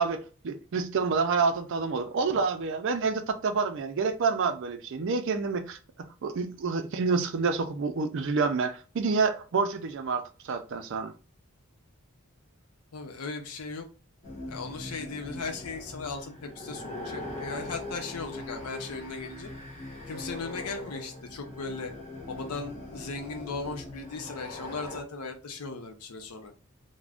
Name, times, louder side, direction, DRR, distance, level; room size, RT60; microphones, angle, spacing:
voice 1, 0.0-5.8 6.2-11.1, right 4 dB, 55° right, 0.4 m, -28 dB
voice 2, 12.9-13.9 14.5-19.5 20.1-21.9 22.3-26.5, left 4 dB, 85° left, 0.7 m, -37 dB
sound 1, 14.2-25.0, left 2 dB, 30° left, 0.6 m, -41 dB
2.5 x 2.1 x 3.4 m
head